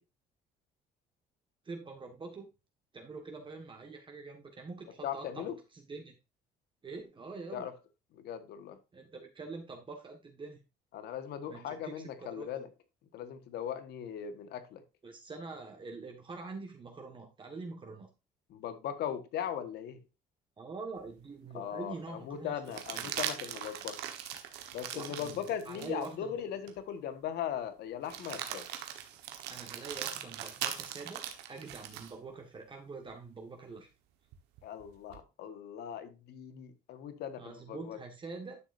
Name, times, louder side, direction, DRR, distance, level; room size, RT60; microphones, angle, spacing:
voice 1, 1.6-2.5 2.9-5.5 5.9-6.1 6.8-7.7 8.9-10.6 11.5-12.5 15.0-18.1 20.6-22.5 22.9-23.1 24.9-26.3 29.5-33.9 37.4-38.6, right 4 dB, 30° right, 1.6 m, -45 dB
voice 2, 5.0-5.6 7.5-7.7 8.1-8.8 10.9-12.7 13.1-14.8 18.5-20.0 21.5-24.0 24.7-28.7 34.6-38.0, left 9 dB, 75° left, 1.5 m, -39 dB
sound 1, 21.1-21.2 22.7-26.1 26.7-26.8 28.0-32.1 34.3-35.2, right 10 dB, 90° right, 1.3 m, -40 dB
11.0 x 6.4 x 2.6 m
cardioid pair, 110°, 17 cm